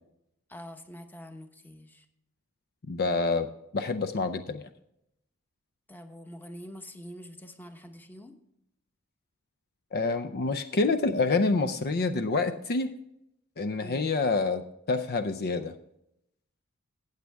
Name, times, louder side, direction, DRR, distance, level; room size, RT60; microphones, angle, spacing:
voice 1, 0.5-2.0 5.9-8.4 13.8-14.1, equal, 10° left, 6 dB, 1.0 m, -45 dB
voice 2, 2.9-3.5 3.7-4.7 9.9-12.9 13.6-15.8, left 3 dB, 50° left, 9 dB, 0.5 m, -27 dB
15.0 x 8.2 x 3.4 m, 0.80 s
head